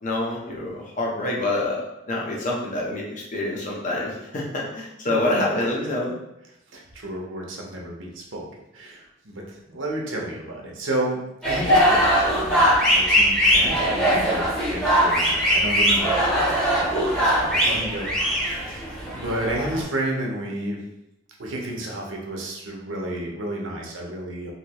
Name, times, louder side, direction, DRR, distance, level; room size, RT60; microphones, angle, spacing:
voice 1, 0.0-3.0 3.3-6.1, left 2 dB, 40° left, -3 dB, 0.7 m, -26 dB
voice 2, 5.0-5.8 6.7-11.2 11.4-18.9 19.1-20.8 21.4-24.5, right 1 dB, 70° right, -1 dB, 0.7 m, -32 dB
sound 1, 11.4-19.8, equal, 5° left, 0.8 m, -21 dB
3.2 x 2.7 x 2.9 m, 0.87 s
head